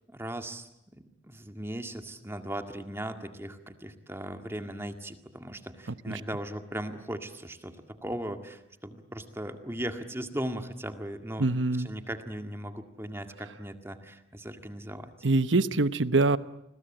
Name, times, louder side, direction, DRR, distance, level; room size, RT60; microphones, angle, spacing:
voice 1, 0.1-11.5 11.8-15.1, right 1 dB, 15° right, 7 dB, 1.9 m, -38 dB
voice 2, 11.4-11.9 15.2-16.4, right 3 dB, 85° right, 14 dB, 1.0 m, -24 dB
29.5 x 21.5 x 8.9 m, 0.83 s
head